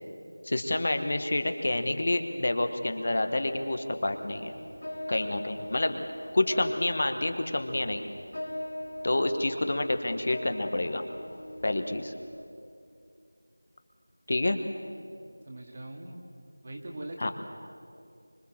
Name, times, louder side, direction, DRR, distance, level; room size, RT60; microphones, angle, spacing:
voice 1, 0.4-4.5 5.1-6.0 6.3-8.0 9.0-11.0 11.6-12.1 14.3-14.6 17.2-17.3, left 2 dB, 40° left, 7 dB, 1.3 m, -28 dB
sound 1, 4.0-12.5, left 1 dB, 60° left, 2.2 m, -42 dB
voice 2, 15.5-16.2 16.6-17.3, right 1 dB, 25° right, 2 dB, 2.1 m, -41 dB
25.0 x 23.0 x 7.4 m, 2.5 s
figure-of-eight pair, 180°, 0 cm